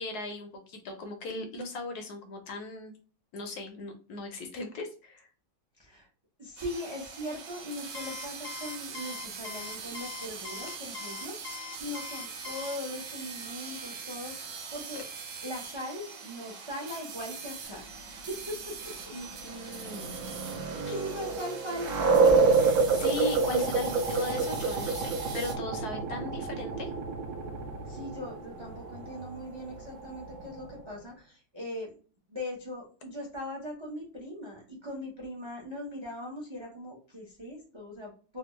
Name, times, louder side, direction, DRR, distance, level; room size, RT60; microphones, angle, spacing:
voice 1, 0.0-2.9 3.3-5.3 19.1-20.1 20.8-20.9 22.6-26.9, left 2 dB, 70° left, 5 dB, 1.0 m, -38 dB
voice 2, 6.4-15.0 15.4-17.8 18.1-18.9 20.4-22.4 27.9-31.9 32.3-38.4, left 1 dB, 45° right, -2 dB, 0.3 m, -40 dB
sound 1, 6.6-25.5, right 5 dB, 85° right, 1.5 m, -42 dB
Alarm, 7.9-12.8, left 7 dB, 90° left, 1.3 m, -42 dB
sound 2, 19.4-30.8, right 4 dB, 65° right, 1.1 m, -28 dB
3.4 x 2.3 x 2.9 m, 0.39 s
omnidirectional pair, 2.0 m